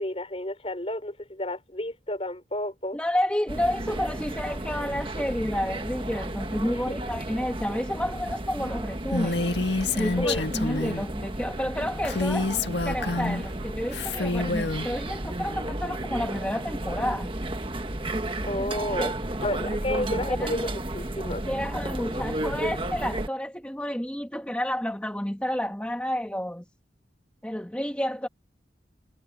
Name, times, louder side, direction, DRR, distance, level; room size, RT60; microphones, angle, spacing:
voice 1, 0.0-3.0 6.9-7.0 10.2-10.4 10.8-11.0 18.5-19.1 19.4-20.7 20.9-21.4, left 1 dB, 35° left, 4.9 m, -31 dB
voice 2, 2.9-9.5 9.9-12.5 12.8-17.3 19.0-19.1 20.3-20.5 21.4-26.6 27.4-28.3, equal, 5° left, 1.4 m, -30 dB
sound 1, 3.5-23.3, right 1 dB, 30° right, 1.4 m, -33 dB
Female speech woman speaking, 9.1-11.0 12.0-13.4 13.9-14.9, left 3 dB, 75° left, 1.8 m, -28 dB
head